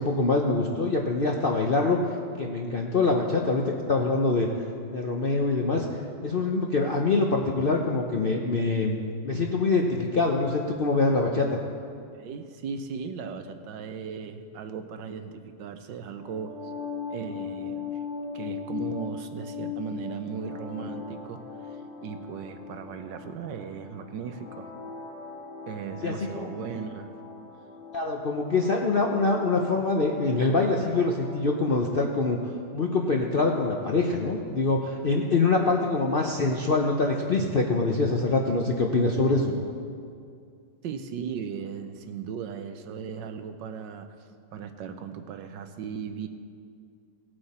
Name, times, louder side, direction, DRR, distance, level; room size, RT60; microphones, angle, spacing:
voice 1, 0.0-2.0 2.4-4.5 4.9-5.9 6.2-9.0 9.2-11.5 26.0-26.5 27.9-32.4 32.7-39.5, left 3 dB, 55° left, 0 dB, 0.6 m, -24 dB
voice 2, 12.1-16.7 17.1-17.9 18.3-21.7 22.0-24.7 25.7-27.1 40.8-44.1 44.5-46.3, right 6 dB, 85° right, 8 dB, 1.4 m, -37 dB
sound 1, 16.1-32.1, left 5 dB, 85° left, 2.2 m, -39 dB
18.0 x 7.8 x 4.2 m, 2.3 s
omnidirectional pair, 1.9 m